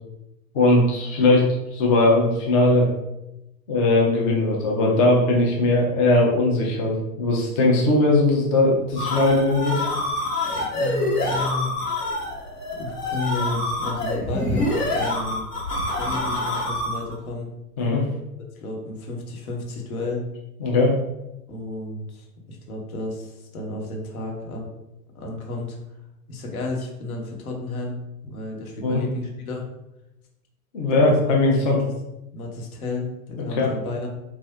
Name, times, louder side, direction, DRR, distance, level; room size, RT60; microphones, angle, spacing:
voice 1, 0.5-2.9 3.7-9.8 17.8-18.0 20.6-20.9 28.8-29.0 30.7-31.8 33.5-33.7, left 2 dB, 25° left, -2 dB, 0.4 m, -19 dB
sound 1, 8.7-17.2, left 1 dB, 85° left, 1.3 m, -26 dB
voice 2, 10.7-11.7 12.7-15.5 16.0-17.5 18.5-20.2 21.5-24.7 25.1-25.8 26.3-28.0 28.2-29.7 30.9-31.1 31.6-31.9 32.3-34.1, left 2 dB, 65° left, 0 dB, 1.0 m, -32 dB
3.4 x 2.5 x 2.3 m, 0.92 s
figure-of-eight pair, 100°, 46 cm